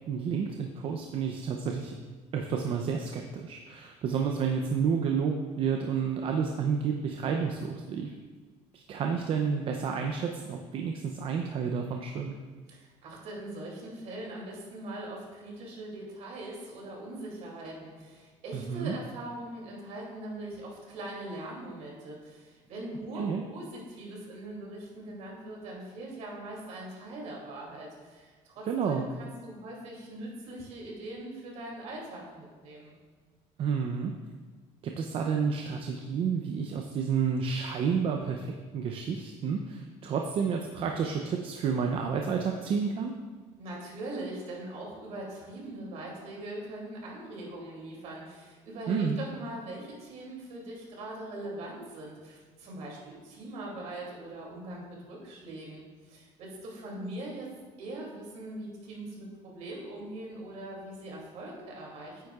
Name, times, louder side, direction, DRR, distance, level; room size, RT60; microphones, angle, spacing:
voice 1, 0.1-2.0 2.3-8.1 8.7-12.3 18.5-19.0 23.1-23.4 28.7-29.1 33.6-34.1 34.8-43.1 48.9-49.2, right 6 dB, 45° right, 3 dB, 0.6 m, -30 dB
voice 2, 12.7-33.0 43.6-57.5 57.8-62.2, right 1 dB, 60° right, -2 dB, 2.7 m, -41 dB
9.4 x 9.1 x 2.4 m, 1.4 s
cardioid pair, 150°, 13 cm